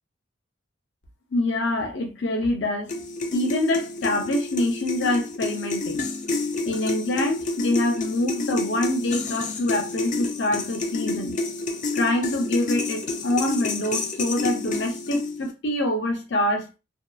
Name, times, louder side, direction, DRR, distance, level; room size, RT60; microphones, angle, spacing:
voice 1, 1.3-2.9 3.3-6.1 6.6-11.4 11.9-16.7, left 1 dB, 65° left, 0.7 m, -25 dB
sound 1, 2.9-15.5, left 3 dB, 40° left, 0.4 m, -29 dB
2.7 x 2.4 x 2.3 m
head